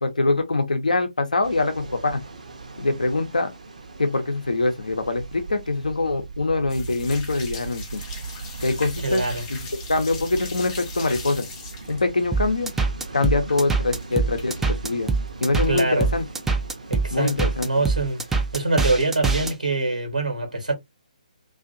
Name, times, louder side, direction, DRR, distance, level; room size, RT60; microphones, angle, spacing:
voice 1, 0.0-2.2 2.8-3.5 4.0-8.0 8.6-9.2 9.5-9.6 9.9-11.5 11.9-12.7 13.1-15.1 15.4-16.2 17.1-17.8, left 3 dB, 65° left, 0.7 m, -24 dB
sound 1, 1.4-19.3, right 5 dB, 60° right, 0.7 m, -39 dB
sound 2, 6.7-14.7 15.0-15.8 16.1-16.2 16.6-16.7 16.9-17.1 17.9-18.4 18.8-19.5, left 4 dB, 20° left, 0.8 m, -41 dB
voice 2, 9.0-9.4 15.7-16.1 16.9-18.3 18.5-20.7, right 2 dB, 80° right, 1.0 m, -24 dB
sound 3, 12.3-19.5, right 4 dB, 5° right, 0.3 m, -24 dB
2.5 x 2.4 x 2.5 m
figure-of-eight pair, 135°, 4 cm